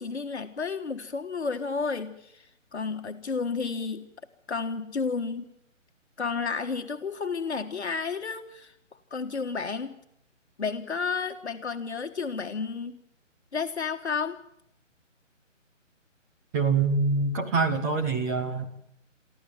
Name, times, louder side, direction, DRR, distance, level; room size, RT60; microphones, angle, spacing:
voice 1, 0.0-2.5 2.7-4.1 4.5-5.4 6.2-8.7 9.1-10.0 10.6-13.0 13.5-14.4, left 5 dB, 60° left, 6 dB, 1.6 m, -31 dB
voice 2, 16.5-18.8, right 4 dB, 15° right, 2 dB, 1.2 m, -25 dB
24.5 x 14.5 x 9.4 m, 0.74 s
figure-of-eight pair, 145°, 38 cm